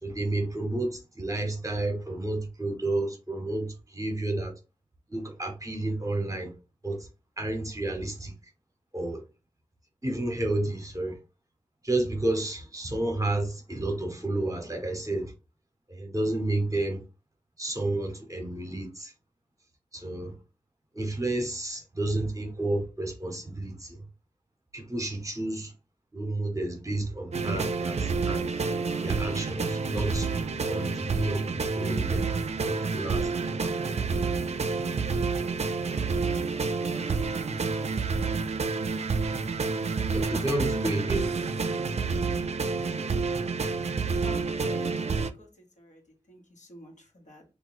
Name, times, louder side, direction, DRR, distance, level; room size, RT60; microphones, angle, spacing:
voice 1, 0.0-4.5 5.1-6.5 6.8-7.1 7.4-8.3 8.9-9.2 10.0-11.2 11.8-15.3 15.9-17.0 17.6-19.1 19.9-20.4 20.9-24.0 24.7-25.7 26.1-28.5 29.0-30.3 30.7-32.3 32.6-33.3 33.6-33.7 40.1-41.3, right 2 dB, 25° right, 1.0 m, -31 dB
sound 1, 27.3-45.3, right 4 dB, 55° right, 0.4 m, -29 dB
voice 2, 44.2-46.0 46.3-47.4, left 2 dB, 65° left, 1.3 m, -48 dB
3.0 x 2.5 x 4.0 m
wide cardioid pair, 70°, 13 cm